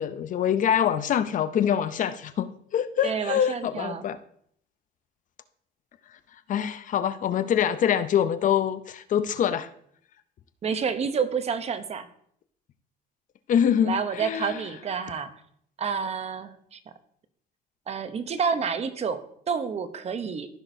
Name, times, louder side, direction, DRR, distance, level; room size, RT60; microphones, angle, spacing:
voice 1, 0.0-4.2 6.5-9.7 13.5-14.6, left 9 dB, 50° left, 12 dB, 0.5 m, -25 dB
voice 2, 3.0-4.0 10.6-12.1 13.8-15.3 15.8-16.8 17.9-19.2 19.5-20.5, right 6 dB, 40° right, 11 dB, 0.8 m, -29 dB
14.5 x 6.0 x 2.7 m, 0.66 s
cardioid pair, 110°, 17 cm